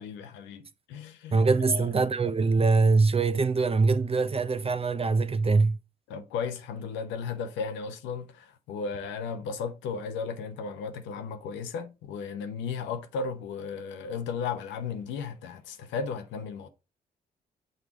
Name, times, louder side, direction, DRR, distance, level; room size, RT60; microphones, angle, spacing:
voice 1, 0.0-1.9 6.1-16.7, left 5 dB, 80° left, 0.8 m, -35 dB
voice 2, 1.3-5.8, right 4 dB, 30° right, 0.7 m, -23 dB
6.4 x 3.3 x 4.9 m
hypercardioid pair, 45°, 19 cm